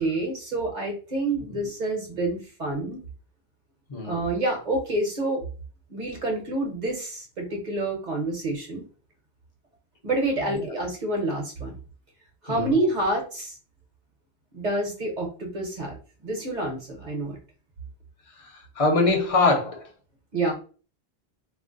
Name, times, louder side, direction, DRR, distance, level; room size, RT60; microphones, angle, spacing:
voice 1, 0.0-3.0 4.0-5.4 5.9-8.9 10.0-11.8 12.4-13.6 14.5-16.0 16.2-17.4 20.3-20.5, right 2 dB, 45° right, 1 dB, 0.9 m, -28 dB
voice 2, 18.4-19.9, left 3 dB, 35° left, 2 dB, 0.7 m, -24 dB
2.4 x 2.0 x 3.7 m, 0.37 s
omnidirectional pair, 1.1 m